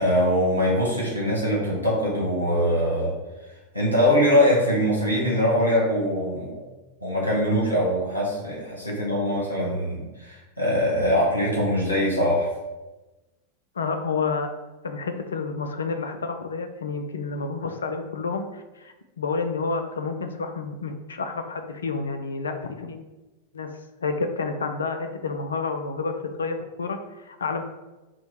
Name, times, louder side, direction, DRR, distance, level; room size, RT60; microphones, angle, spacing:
voice 1, 0.0-3.1 3.7-6.6 7.0-12.5, equal, 85° left, -6 dB, 1.3 m, -22 dB
voice 2, 13.8-14.5 14.8-23.0 23.5-23.7 24.0-27.6, left 4 dB, 70° left, 7 dB, 0.4 m, -29 dB
4.4 x 2.1 x 4.3 m, 1.1 s
figure-of-eight pair, 90°, 0 cm